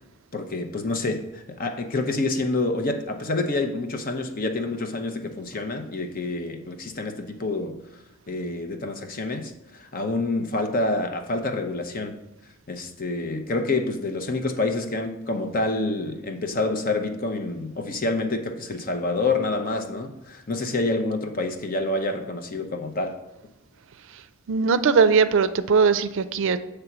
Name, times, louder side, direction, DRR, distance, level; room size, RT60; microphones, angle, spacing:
voice 1, 0.3-7.8 8.3-12.2 12.7-23.2, left 2 dB, 45° left, 6 dB, 0.7 m, -27 dB
voice 2, 24.5-26.6, right 5 dB, 65° right, 12 dB, 0.4 m, -20 dB
8.0 x 3.4 x 6.0 m, 0.96 s
head